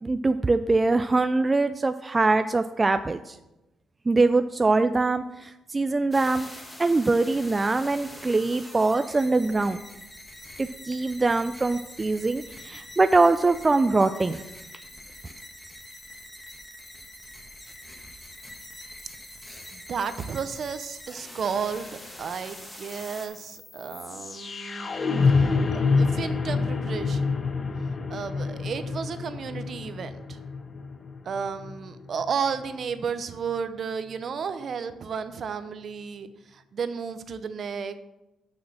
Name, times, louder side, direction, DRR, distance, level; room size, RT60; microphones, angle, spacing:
voice 1, 0.0-3.4 4.1-6.5 6.8-9.8 10.6-14.4, right 3 dB, 25° right, 9 dB, 0.3 m, -23 dB
sound 1, 6.1-23.3, left 1 dB, 10° left, 1.5 m, -44 dB
voice 2, 19.7-24.9 25.3-27.4 28.1-30.4 31.2-38.0, right 6 dB, 55° right, 11 dB, 0.7 m, -33 dB
sound 2, 22.9-32.9, left 4 dB, 35° left, 0.7 m, -27 dB
6.4 x 6.0 x 6.0 m, 0.97 s
cardioid pair, 90°, 0 cm